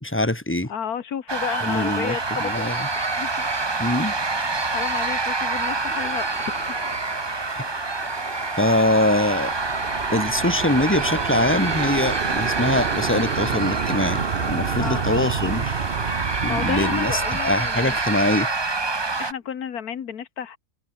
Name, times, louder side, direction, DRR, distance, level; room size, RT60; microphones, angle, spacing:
voice 1, 0.0-0.7 1.6-2.9 3.8-4.1 7.5-7.6 8.6-9.5 10.1-15.7 16.4-18.5, left 1 dB, 10° left, 2.2 m, -23 dB
voice 2, 0.7-2.6 2.9-3.5 4.4-6.6 7.7-7.9 14.8-15.3 16.5-18.0 19.2-20.6, left 8 dB, 85° left, 1.8 m, -32 dB
sound 1, 1.3-19.3, right 3 dB, 20° right, 0.9 m, -27 dB
sound 2, 1.7-16.2, left 2 dB, 40° left, 3.7 m, -45 dB
sound 3, 9.1-18.8, right 7 dB, 45° right, 1.0 m, -30 dB
omnidirectional pair, 1.6 m